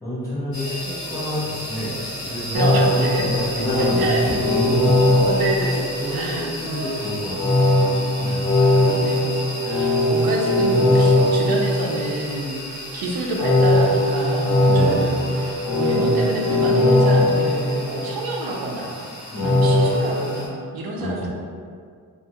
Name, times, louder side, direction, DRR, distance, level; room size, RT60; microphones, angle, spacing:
voice 1, 0.0-5.3 6.0-7.7 8.2-8.5 14.6-15.3 19.3-19.7 21.0-21.3, left 1 dB, 10° left, -12 dB, 0.9 m, -28 dB
sound 1, 0.5-20.5, left 1 dB, 40° left, 0.6 m, -34 dB
sound 2, 2.5-6.4 7.3-12.4 13.3-18.4 19.4-20.1, left 1 dB, 80° left, 1.1 m, -19 dB
voice 2, 2.5-3.4 4.0-4.3 5.2-5.9 6.1-7.0 8.2-19.1 19.4-21.3, right 2 dB, 85° right, -1 dB, 0.5 m, -28 dB
2.4 x 2.2 x 2.8 m, 2.1 s
wide cardioid pair, 160°, 36 cm